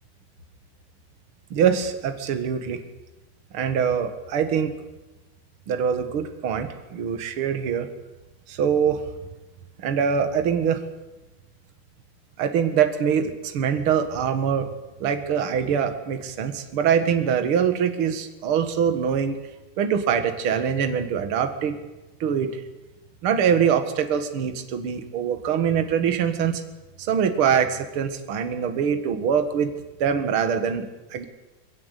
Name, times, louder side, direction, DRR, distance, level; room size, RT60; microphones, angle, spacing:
voice 1, 1.5-2.8 3.5-4.7 5.7-7.9 8.5-9.1 9.8-10.8 12.4-14.7 15.0-19.4 19.8-21.8 22.2-22.6 23.2-26.7 27.0-29.7 30.0-31.3, right 7 dB, 50° right, 8 dB, 2.2 m, -23 dB
21.5 x 17.5 x 8.3 m, 1.1 s
omnidirectional pair, 3.6 m